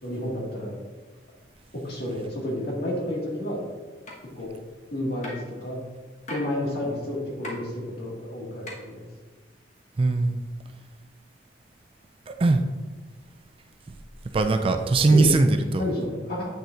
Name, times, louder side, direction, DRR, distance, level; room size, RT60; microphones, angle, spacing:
voice 1, 0.0-0.7 1.7-3.6 4.4-4.5 4.9-5.3 5.6-5.8 6.3-9.1 15.1-15.3 15.8-16.5, left 1 dB, 55° left, -4 dB, 1.9 m, -30 dB
sound 1, 4.1-4.2 5.2-5.5 6.3-6.5 7.4-7.5 8.7-8.8, left 1 dB, 40° left, 1.3 m, -35 dB
voice 2, 10.0-10.4 12.3-12.6 14.3-15.8, right 3 dB, 30° right, 6 dB, 0.3 m, -20 dB
8.2 x 6.5 x 2.5 m, 1.3 s
head